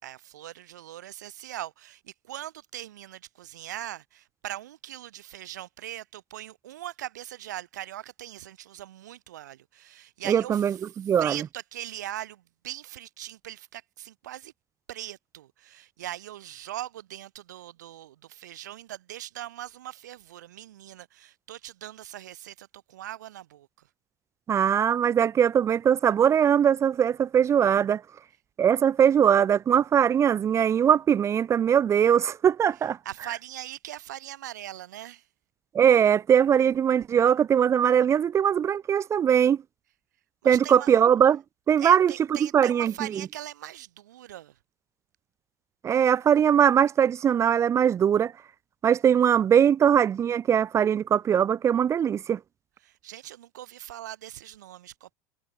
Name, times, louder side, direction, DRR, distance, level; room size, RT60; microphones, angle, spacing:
voice 1, 0.0-10.8 11.2-14.5 14.9-23.7 33.0-35.2 40.4-40.9 41.8-44.5 52.8-55.1, right 13 dB, 90° right, 2.5 m, -40 dB
voice 2, 10.3-11.4 24.5-28.0 28.6-33.0 35.7-39.6 40.4-41.4 41.7-42.1 42.4-42.9 45.8-48.3 48.8-52.4, right 8 dB, 30° right, 1.0 m, -21 dB
supercardioid pair, 105°, 9 cm